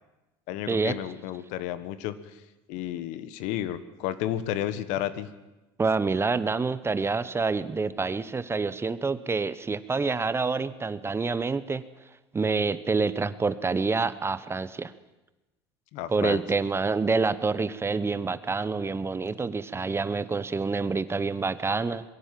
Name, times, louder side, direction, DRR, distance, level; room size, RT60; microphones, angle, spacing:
voice 1, 0.5-2.1 2.7-5.3 15.9-16.4, left 12 dB, 65° left, 14 dB, 1.4 m, -32 dB
voice 2, 5.8-11.8 12.3-14.9 16.1-22.0, right 4 dB, 20° right, 15 dB, 1.0 m, -27 dB
22.0 x 16.5 x 7.6 m, 1.0 s
hypercardioid pair, 90°, 13 cm